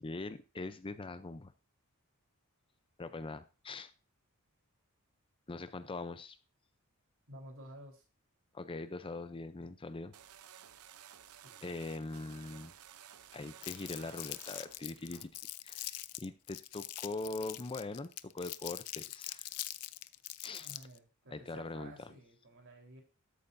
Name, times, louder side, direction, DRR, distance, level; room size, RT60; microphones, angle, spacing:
voice 1, 0.0-1.5 3.0-3.9 5.5-6.4 8.5-10.1 11.6-12.7 13.3-15.3 15.6-19.5 20.4-20.7 21.3-21.9, left 3 dB, 25° left, 12 dB, 0.5 m, -42 dB
voice 2, 7.3-8.0 11.3-11.9 20.6-23.0, right 1 dB, 60° right, 2 dB, 3.9 m, -53 dB
sound 1, 10.1-15.6, right 10 dB, 75° right, 0.7 m, -55 dB
Crumpling crinkling, 13.6-21.0, left 16 dB, 85° left, 0.5 m, -43 dB
13.0 x 8.4 x 2.6 m, 0.33 s
head